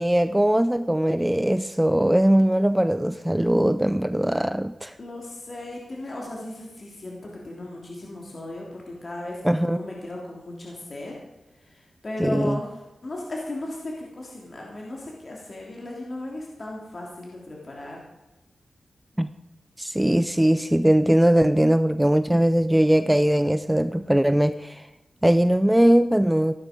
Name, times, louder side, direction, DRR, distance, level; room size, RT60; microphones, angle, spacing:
voice 1, 0.0-4.9 9.4-9.8 12.2-12.6 19.2-19.3 19.8-24.9 25.2-26.5, right 1 dB, 10° right, 11 dB, 0.5 m, -20 dB
voice 2, 5.0-11.2 11.6-12.7 13.0-18.0, left 1 dB, 45° left, -2 dB, 3.3 m, -36 dB
15.5 x 12.0 x 5.3 m, 1.0 s
wide cardioid pair, 80°, 0 cm